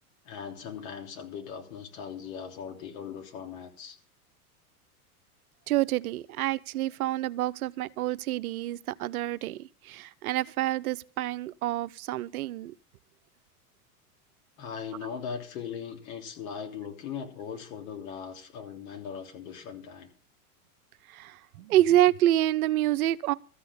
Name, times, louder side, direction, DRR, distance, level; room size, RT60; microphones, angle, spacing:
voice 1, 0.2-4.0 14.6-20.1 21.6-21.7, left 7 dB, 60° left, 3.3 m, -39 dB
voice 2, 5.7-12.7 21.1-23.3, right 14 dB, 70° right, 0.7 m, -27 dB
14.0 x 6.2 x 8.5 m
hypercardioid pair, 100°, 44 cm